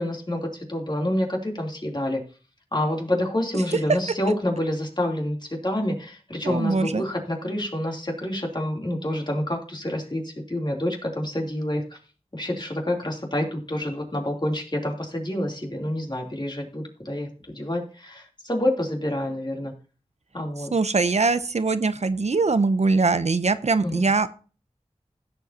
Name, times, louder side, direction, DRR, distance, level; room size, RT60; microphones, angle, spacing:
voice 1, 0.0-2.2 2.7-5.4 5.6-11.8 12.3-19.7 20.3-20.7 23.8-24.1, left 1 dB, 40° left, 0 dB, 3.0 m, -28 dB
voice 2, 6.4-7.0 20.7-24.3, right 3 dB, 70° right, 12 dB, 0.6 m, -22 dB
16.5 x 7.5 x 2.8 m, 0.36 s
wide cardioid pair, 55°, 12 cm